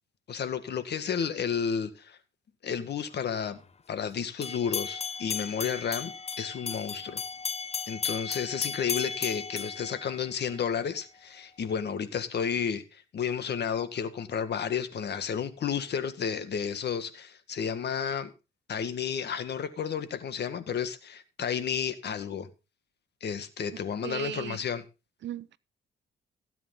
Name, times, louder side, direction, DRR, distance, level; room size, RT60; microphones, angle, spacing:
voice 1, 0.3-2.2 2.6-3.6 3.9-7.2 7.9-18.3 18.7-22.5 23.2-24.8, left 7 dB, 55° left, 1.8 m, -32 dB
sound 1, 4.4-10.7, left 6 dB, 30° left, 0.8 m, -35 dB
voice 2, 24.0-24.6 25.2-25.6, right 11 dB, 65° right, 0.7 m, -36 dB
16.5 x 8.5 x 3.8 m
cardioid pair, 90°, 20 cm